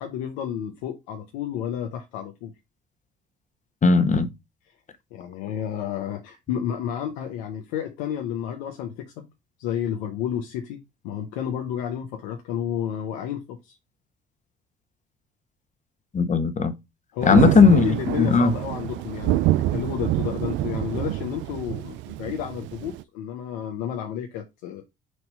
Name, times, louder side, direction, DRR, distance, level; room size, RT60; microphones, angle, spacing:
voice 1, 0.0-2.5 5.1-9.3 9.6-13.8 17.1-24.8, left 9 dB, 80° left, 0.9 m, -31 dB
voice 2, 3.8-4.3 16.1-16.7 17.3-17.8 18.2-18.5, left 4 dB, 35° left, 1.2 m, -17 dB
Thunder, 17.2-23.0, right 15 dB, 65° right, 0.4 m, -26 dB
6.4 x 3.0 x 5.4 m
hypercardioid pair, 55°, 20 cm